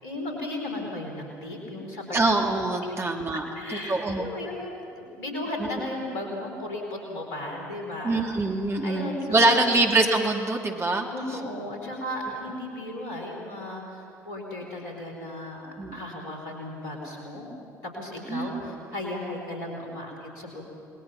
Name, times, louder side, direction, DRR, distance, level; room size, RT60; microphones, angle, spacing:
voice 1, 0.0-2.0 2.8-3.0 3.5-8.2 8.8-9.7 11.1-17.5 17.8-20.6, left 1 dB, 70° left, 1 dB, 4.3 m, -35 dB
voice 2, 2.1-3.5 3.9-4.3 5.6-5.7 8.0-11.1 15.8-16.2 18.3-18.7, right 2 dB, 25° right, 2 dB, 2.6 m, -24 dB
28.5 x 20.5 x 5.9 m, 2.4 s
figure-of-eight pair, 50°, 10 cm